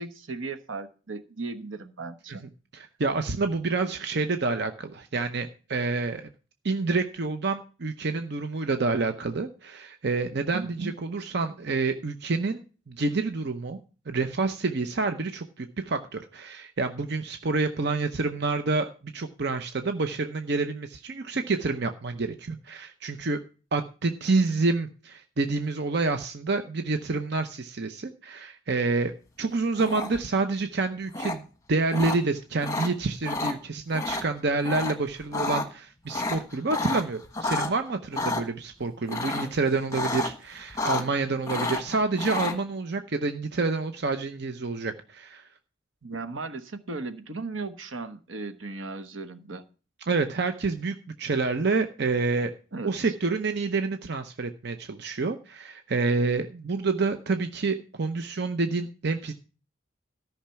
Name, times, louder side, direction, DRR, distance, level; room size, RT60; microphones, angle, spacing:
voice 1, 0.0-2.4 10.5-10.9 46.0-49.6 52.7-53.1, right 3 dB, 80° right, 9 dB, 1.2 m, -36 dB
voice 2, 2.7-6.3 6.6-13.8 14.1-23.4 23.7-29.1 29.4-45.5 50.1-52.5 52.8-59.3, right 3 dB, 55° right, 7 dB, 0.8 m, -28 dB
sound 1, 29.8-30.3 31.1-31.3 31.9-32.2 32.6-32.9 33.2-33.5 33.9-34.2 34.6-34.9 35.2-35.6 36.1-37.7 38.1-38.4 39.1-39.6 39.9-40.3 40.6-41.2 41.5-42.5, left 3 dB, 15° left, 1.3 m, -30 dB
13.5 x 5.8 x 5.7 m, 0.36 s
head